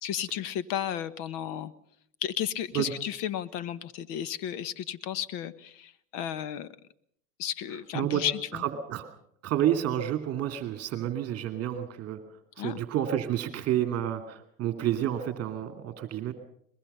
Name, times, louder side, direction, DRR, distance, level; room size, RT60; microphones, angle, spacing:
voice 1, 0.0-1.7 2.2-6.7 7.4-8.6 12.6-12.8, left 10 dB, 45° left, 15 dB, 1.3 m, -33 dB
voice 2, 7.9-8.2 8.9-9.1 9.4-12.2 12.6-16.3, right 11 dB, 30° right, 7 dB, 2.7 m, -29 dB
22.5 x 21.0 x 5.6 m, 0.67 s
hypercardioid pair, 120°, 46 cm